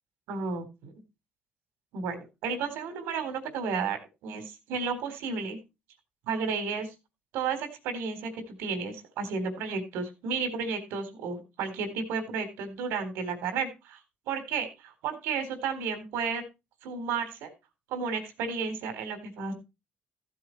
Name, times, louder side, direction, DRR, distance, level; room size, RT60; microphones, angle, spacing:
voice 1, 0.3-0.9 1.9-5.6 6.3-6.9 7.3-14.0 14.3-16.4 16.8-17.5 17.9-19.5, right 5 dB, 85° right, 8 dB, 3.9 m, -32 dB
15.5 x 7.9 x 4.6 m, 0.27 s
cardioid pair, 110°, 4 cm